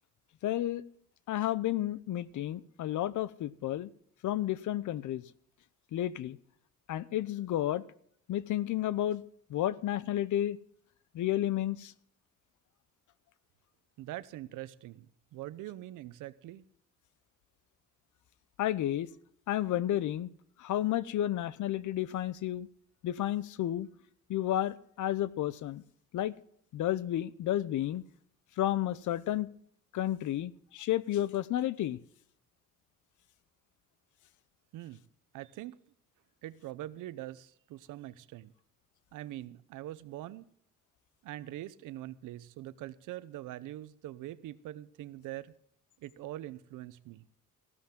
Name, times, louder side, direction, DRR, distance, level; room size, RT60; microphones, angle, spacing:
voice 1, 0.4-0.8 1.3-3.9 4.2-5.2 5.9-6.4 6.9-7.8 8.3-9.2 9.5-10.6 11.1-11.9 18.6-19.1 19.5-20.3 20.6-22.7 23.0-23.9 24.3-25.8 26.1-26.3 26.7-28.0 28.6-29.5 29.9-32.0, left 13 dB, 75° left, 0.7 m, -31 dB
voice 2, 14.0-16.6 34.7-35.0 35.3-35.8 36.4-38.5 39.1-40.5 41.2-45.5 46.0-47.3, right 14 dB, 90° right, 0.8 m, -43 dB
15.5 x 13.0 x 3.7 m
cardioid pair, 85°, 30 cm